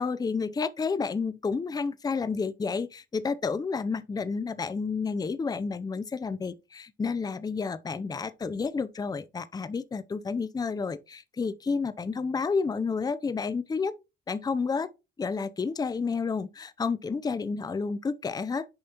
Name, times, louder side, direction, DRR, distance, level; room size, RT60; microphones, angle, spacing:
voice 1, 0.0-13.9 14.3-14.9 15.2-18.7, left 5 dB, 20° left, 0.5 m, -30 dB
7.0 x 5.1 x 2.9 m
cardioid pair, 90°, 20 cm